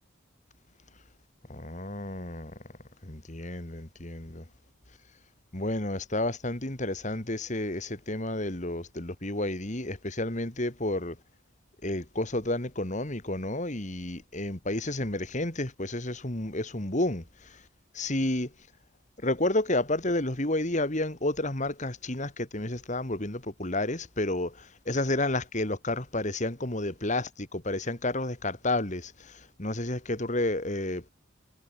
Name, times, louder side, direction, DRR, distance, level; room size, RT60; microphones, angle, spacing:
voice 1, 1.5-2.5 3.0-4.4 5.5-11.2 11.8-17.2 17.9-18.5 19.2-29.3 29.6-31.1, left 2 dB, 35° left, 2.5 m, -31 dB
head